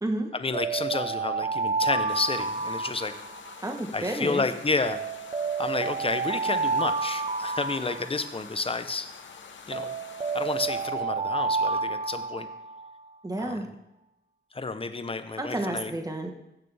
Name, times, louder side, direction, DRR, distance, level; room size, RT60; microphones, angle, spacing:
voice 1, 0.3-3.1 3.9-5.0 5.6-9.1 9.7-9.9 10.3-12.5 13.4-13.6 14.5-15.9, left 3 dB, 30° left, 9 dB, 0.8 m, -30 dB
sound 1, 0.5-3.7 4.8-8.6 9.7-12.9, right 4 dB, 35° right, 0.5 m, -30 dB
sound 2, 2.1-10.9, left 5 dB, 80° left, 0.9 m, -47 dB
voice 2, 3.6-4.4 13.2-13.7 15.4-16.3, right 1 dB, 20° right, 4 dB, 1.3 m, -30 dB
15.0 x 6.7 x 3.4 m, 0.90 s
wide cardioid pair, 85°, 19 cm